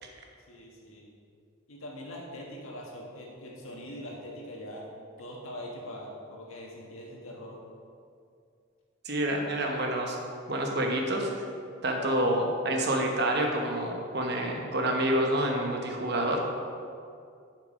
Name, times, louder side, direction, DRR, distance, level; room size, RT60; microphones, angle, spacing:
voice 1, 0.5-1.1 1.7-4.9 5.2-7.6, equal, 80° left, -2 dB, 1.7 m, -42 dB
voice 2, 9.0-10.2 10.5-11.5 11.8-16.4, right 1 dB, 50° right, 1 dB, 1.1 m, -28 dB
7.1 x 6.6 x 5.2 m, 2.4 s
head